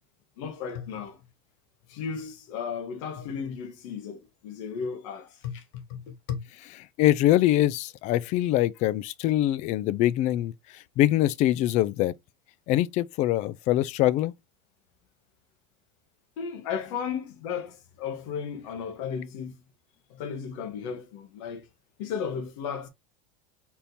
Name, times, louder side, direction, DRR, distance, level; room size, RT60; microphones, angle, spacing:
voice 1, 0.4-1.2 1.9-6.4 16.4-19.6 20.1-21.7 22.0-22.9, left 7 dB, 75° left, 1.3 m, -35 dB
voice 2, 7.0-12.1 12.7-14.3, left 14 dB, 45° left, 0.4 m, -24 dB
4.2 x 3.6 x 2.7 m
supercardioid pair, 130°, 17 cm